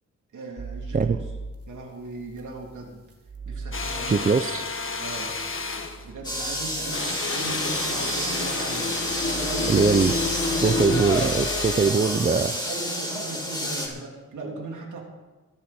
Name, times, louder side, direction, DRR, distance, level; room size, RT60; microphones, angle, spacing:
voice 1, 0.3-1.2 1.7-3.0 3.4-4.2 5.0-5.3 6.0-9.7 10.5-11.2 12.5-15.0, right 3 dB, 80° right, -1 dB, 3.3 m, -38 dB
sound 1, 0.6-11.8, right 3 dB, 50° right, 2.3 m, -40 dB
sound 2, 3.7-6.0 6.9-11.9, left 3 dB, 45° left, 1.6 m, -30 dB
voice 2, 4.1-4.6 9.7-10.2 10.6-12.5, right 5 dB, 30° right, 11 dB, 0.5 m, -21 dB
sound 3, 6.2-13.9, left 1 dB, 15° left, 3.8 m, -29 dB
22.0 x 10.0 x 4.4 m, 1.2 s
cardioid pair, 85°, 30 cm